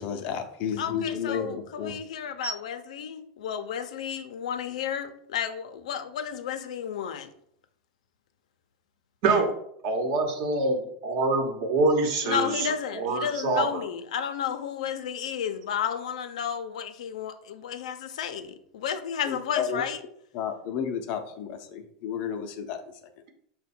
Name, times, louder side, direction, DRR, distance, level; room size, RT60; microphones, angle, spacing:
voice 1, 0.0-2.0 19.3-19.8 20.3-22.8, left 7 dB, 40° left, 0.5 m, -32 dB
voice 2, 0.8-7.3 12.2-20.0, left 8 dB, 85° left, 0.5 m, -32 dB
voice 3, 9.8-10.7 11.0-13.8, right 3 dB, 50° right, 0.9 m, -25 dB
5.5 x 2.2 x 4.2 m
supercardioid pair, 155°, 4 cm